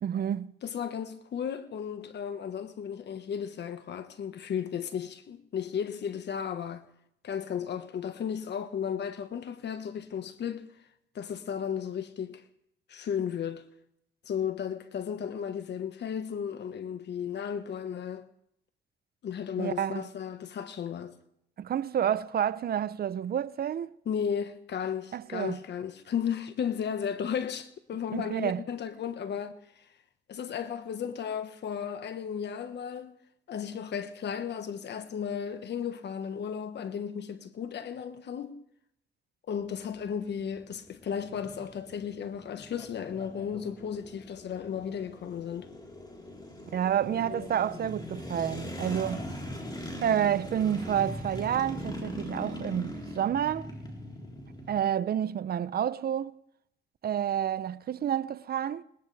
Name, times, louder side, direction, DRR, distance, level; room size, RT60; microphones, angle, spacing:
voice 1, 0.0-0.5 19.6-20.0 21.6-23.9 25.1-25.6 28.1-28.6 46.7-49.2 50.0-53.7 54.7-56.4 57.0-58.8, right 9 dB, 50° right, 0.6 m, -29 dB
voice 2, 0.6-6.8 7.2-10.7 11.1-12.4 12.9-13.6 14.2-18.2 19.2-21.1 24.0-29.5 30.3-33.1 33.5-38.6 39.5-45.7 47.3-47.5, left 8 dB, 60° left, 1.4 m, -34 dB
sound 1, 39.6-54.8, left 1 dB, 20° left, 4.0 m, -41 dB
20.5 x 20.0 x 3.4 m
cardioid pair, 90°, 20 cm